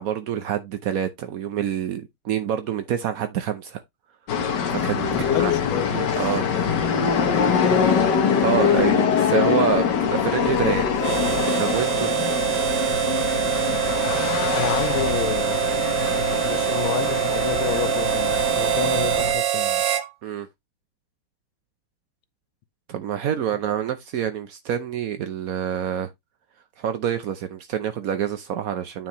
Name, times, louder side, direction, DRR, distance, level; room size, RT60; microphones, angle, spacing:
voice 1, 0.0-3.8 4.7-5.5 5.9-6.4 8.4-10.8 11.6-12.1 20.2-20.5 22.9-26.1 26.8-29.1, right 9 dB, 80° right, 0.7 m, -27 dB
sound 1, 4.3-19.3, left 7 dB, 55° left, 1.7 m, -23 dB
voice 2, 5.1-7.0 7.3-8.1 10.5-10.9 12.1-12.3 14.5-15.6 16.4-19.8 23.5-23.6, left 11 dB, 75° left, 1.5 m, -31 dB
Harmonica, 11.0-20.1, right 12 dB, 65° right, 1.4 m, -24 dB
9.3 x 4.5 x 3.0 m
omnidirectional pair, 2.4 m